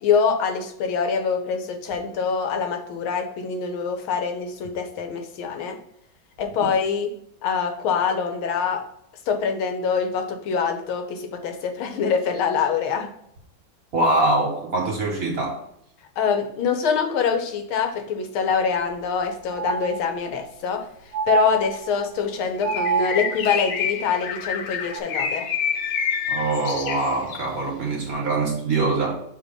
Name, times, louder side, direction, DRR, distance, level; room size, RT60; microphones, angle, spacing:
voice 1, 0.0-5.8 6.4-7.1 7.4-8.8 9.3-13.1 16.2-20.8 21.3-25.5, left 6 dB, 85° left, 5 dB, 1.7 m, -24 dB
voice 2, 13.9-15.6 26.3-29.2, right 2 dB, 50° right, -1 dB, 1.5 m, -23 dB
sound 1, 18.6-18.7 19.0-19.1 19.5-20.5 21.1-22.2 22.6-23.6 24.9-25.0, right 6 dB, 75° right, 1.0 m, -27 dB
Bird, 22.6-27.5, left 7 dB, 70° left, 1.3 m, -28 dB
7.0 x 3.0 x 5.1 m, 0.74 s
omnidirectional pair, 2.3 m